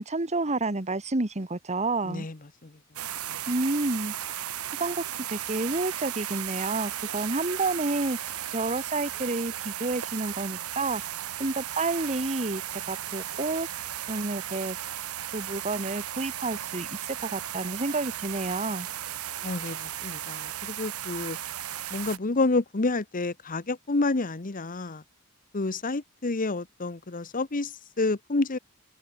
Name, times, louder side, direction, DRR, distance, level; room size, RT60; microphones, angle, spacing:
voice 1, 0.0-2.3 3.5-4.1 4.8-11.0 11.4-12.6 12.9-13.8 14.1-14.8 15.3-18.9, right 2 dB, 30° right, 1.5 m, -30 dB
voice 2, 2.0-2.4 2.6-2.7 3.3-3.4 19.4-21.4 21.9-25.0 25.5-28.6, left 3 dB, 40° left, 1.0 m, -29 dB
sound 1, 3.0-22.2, right 11 dB, 90° right, 1.5 m, -35 dB
head